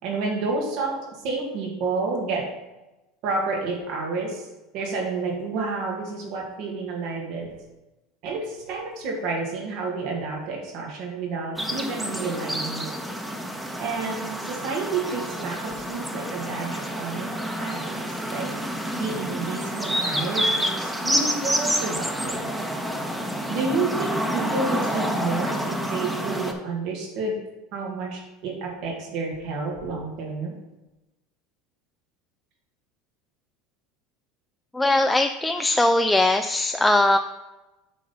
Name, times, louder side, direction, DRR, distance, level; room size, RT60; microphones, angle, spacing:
voice 1, 0.0-2.5 3.2-7.5 8.2-12.9 13.8-18.5 18.9-22.4 23.5-27.4 27.7-30.6, right 3 dB, 65° right, 0 dB, 2.0 m, -30 dB
sound 1, 11.6-26.5, equal, 10° right, 1.1 m, -28 dB
voice 2, 34.7-37.2, left 1 dB, 10° left, 5 dB, 0.4 m, -20 dB
8.3 x 3.9 x 5.5 m, 1.0 s
supercardioid pair, 100°, 0 cm